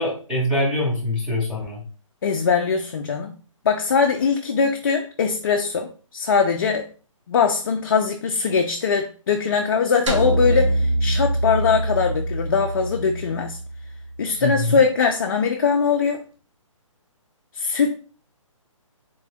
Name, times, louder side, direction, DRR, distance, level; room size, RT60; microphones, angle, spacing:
voice 1, 0.0-1.8 14.4-14.8, left 1 dB, 5° right, -8 dB, 0.7 m, -24 dB
voice 2, 2.2-3.3 3.6-6.9 7.3-13.6 14.2-16.2 17.5-17.9, left 5 dB, 40° left, 3 dB, 0.4 m, -21 dB
sound 1, 10.1-14.4, right 1 dB, 60° right, 0.9 m, -24 dB
3.6 x 2.5 x 3.4 m, 0.38 s
hypercardioid pair, 160°, 17 cm